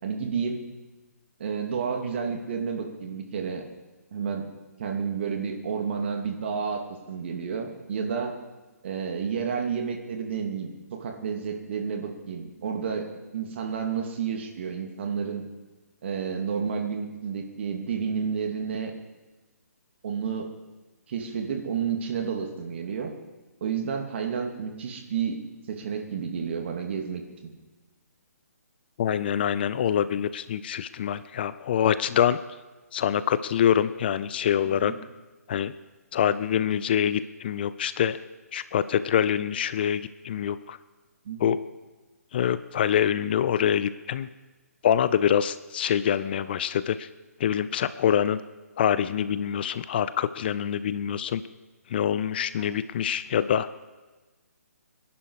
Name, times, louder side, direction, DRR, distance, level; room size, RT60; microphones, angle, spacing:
voice 1, 0.0-0.6 1.4-3.6 4.1-4.5 4.8-8.3 8.8-15.4 16.0-18.9 20.0-20.5 21.1-23.1 23.6-25.4 25.7-27.5 34.7-35.0 41.2-41.5 52.6-52.7, right 6 dB, 45° right, 3 dB, 2.7 m, -31 dB
voice 2, 29.0-32.4 32.9-34.9 35.5-35.7 36.1-38.2 38.5-40.8 41.4-41.6 42.3-44.3 44.8-47.1 47.4-48.4 48.8-51.4 51.9-53.7, left 9 dB, 40° left, 15 dB, 0.6 m, -25 dB
25.0 x 11.0 x 4.9 m, 1.2 s
figure-of-eight pair, 140°, 9 cm